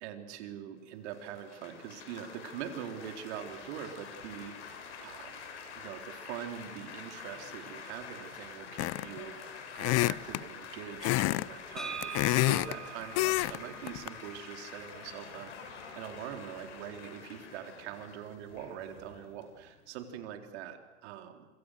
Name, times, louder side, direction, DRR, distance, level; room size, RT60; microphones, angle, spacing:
voice 1, 0.0-5.4 5.8-21.5, right 9 dB, 65° right, 5 dB, 4.0 m, -43 dB
Laughter / Applause / Chatter, 1.1-20.2, left 6 dB, 80° left, 7.2 m, -47 dB
sound 1, 8.8-9.2 9.8-10.4 11.0-11.5 11.8-12.7 13.2-13.6 13.9-14.1, left 21 dB, 45° left, 0.7 m, -27 dB
sound 2, 11.8-15.5, right 6 dB, ahead, 6.4 m, -44 dB
27.0 x 25.5 x 6.6 m, 1.2 s
hypercardioid pair, 95°, 35 cm